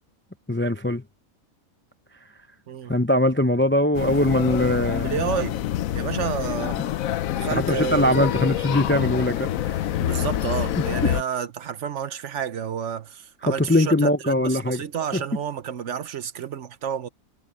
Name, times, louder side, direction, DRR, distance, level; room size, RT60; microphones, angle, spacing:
voice 1, 0.5-1.0 2.9-5.1 7.5-9.8 13.5-14.8 15.1-15.2, left 1 dB, 15° left, 0.4 m, -21 dB
voice 2, 2.7-3.0 5.0-5.6 5.9-6.8 7.3-8.3 10.0-17.1, right 8 dB, 60° right, 1.1 m, -30 dB
sound 1, 3.9-11.2, left 12 dB, 75° left, 1.1 m, -26 dB
omnidirectional pair, 1.5 m